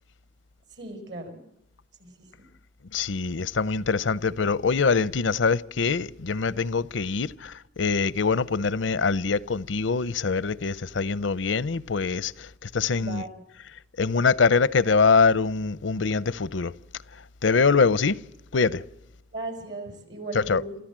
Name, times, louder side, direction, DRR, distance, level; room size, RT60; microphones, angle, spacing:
voice 1, 0.7-1.4 2.0-2.5 13.0-13.4 19.3-20.8, right 2 dB, 65° right, 5.6 m, -37 dB
voice 2, 2.9-13.2 14.0-16.7 17.4-18.2 18.5-18.8 20.3-20.6, left 4 dB, 90° left, 0.7 m, -24 dB
28.0 x 14.0 x 7.5 m
head